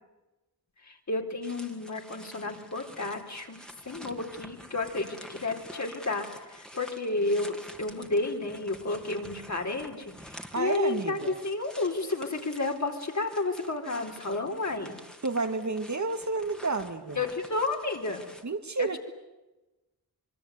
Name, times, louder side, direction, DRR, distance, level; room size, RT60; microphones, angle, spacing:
voice 1, 0.8-3.6 3.8-15.0 17.1-18.3 18.8-19.0, left 2 dB, 45° left, 3 dB, 4.3 m, -31 dB
sound 1, 1.4-18.4, equal, ahead, 2.6 m, -49 dB
voice 2, 10.5-11.4 15.2-17.2 18.4-19.0, right 3 dB, 50° right, 7 dB, 2.1 m, -30 dB
26.0 x 23.0 x 9.4 m, 1.1 s
wide cardioid pair, 90°, 37 cm